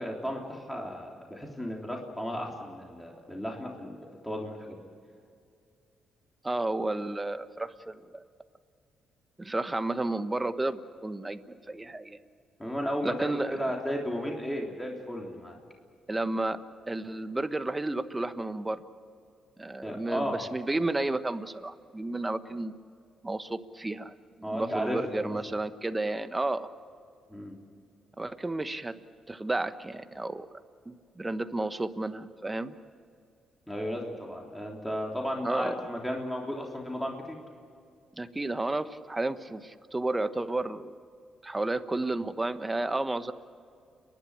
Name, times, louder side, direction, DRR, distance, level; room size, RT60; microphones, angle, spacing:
voice 1, 0.0-4.0 4.2-4.8 12.6-15.6 19.8-20.5 24.4-25.4 27.3-27.6 33.7-37.4, equal, 5° left, -1 dB, 3.4 m, -34 dB
voice 2, 6.4-8.2 9.4-12.2 13.0-13.6 16.1-16.6 16.9-18.8 19.6-22.7 23.2-24.1 24.5-26.7 28.2-29.0 29.3-30.5 30.9-32.7 35.4-35.8 38.2-41.0 41.4-43.3, right 2 dB, 15° right, 11 dB, 1.1 m, -32 dB
29.5 x 11.5 x 10.0 m, 2.3 s
cardioid pair, 90°, 0 cm